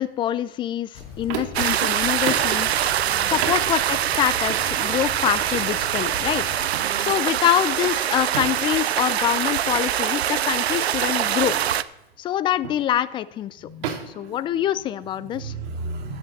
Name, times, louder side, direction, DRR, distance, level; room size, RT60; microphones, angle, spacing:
voice 1, 0.0-2.7 3.3-6.4 7.0-11.6 12.2-13.7 14.2-15.5, left 11 dB, 15° left, 17 dB, 0.3 m, -25 dB
sound 1, 0.9-6.7, left 5 dB, 45° left, 2.5 m, -40 dB
sound 2, 1.3-1.7 2.3-2.6 3.4-3.7 4.5-4.7 5.5-5.7 6.7-7.0 8.3-8.7 10.0-10.1 10.6-10.7 11.5-11.7 12.6-12.9 13.8-15.0, right 8 dB, 55° right, 2.2 m, -32 dB
sound 3, 1.5-11.8, right 11 dB, 85° right, 0.6 m, -24 dB
voice 2, 3.1-3.4 6.8-7.2 13.6-14.3 14.5-14.6 15.2-16.2, right 3 dB, 30° right, 2 dB, 2.5 m, -35 dB
13.5 x 8.7 x 4.1 m, 0.91 s
hypercardioid pair, 105°, 31 cm